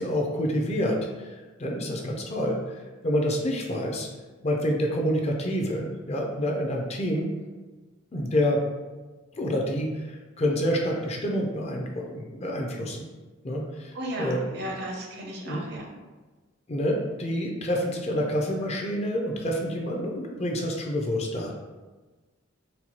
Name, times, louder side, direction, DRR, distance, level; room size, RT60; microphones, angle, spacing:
voice 1, 0.0-4.1 4.4-7.2 8.1-8.6 9.4-13.0 13.4-14.4 15.4-15.6 16.7-21.5, equal, 35° left, 0 dB, 0.5 m, -28 dB
voice 2, 13.9-15.8, right 1 dB, 55° right, 0 dB, 0.6 m, -34 dB
4.2 x 2.3 x 2.8 m, 1.3 s
head